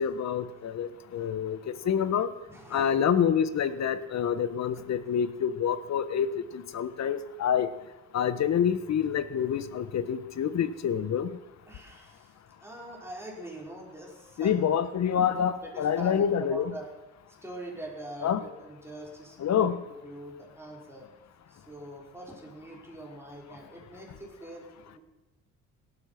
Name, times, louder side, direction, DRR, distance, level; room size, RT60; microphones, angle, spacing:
voice 1, 0.0-2.3 2.7-7.7 8.1-11.4 14.4-16.7 18.2-18.4 19.4-19.8, left 8 dB, 60° left, 13 dB, 1.4 m, -27 dB
voice 2, 2.5-3.0 5.0-5.1 11.7-14.6 15.6-16.9 17.3-21.1 21.5-25.0, right 1 dB, 10° right, -2 dB, 5.5 m, -43 dB
18.0 x 13.0 x 6.0 m, 1.1 s
cardioid pair, 90°, 30 cm